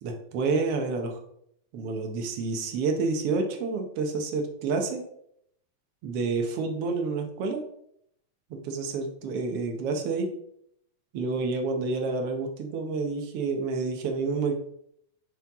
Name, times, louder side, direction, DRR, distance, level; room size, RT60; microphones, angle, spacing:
voice 1, 0.0-1.2 1.7-5.0 6.0-7.6 8.5-10.3 11.1-14.5, right 4 dB, 70° right, 3 dB, 1.4 m, -29 dB
9.8 x 4.5 x 3.6 m, 0.71 s
omnidirectional pair, 3.9 m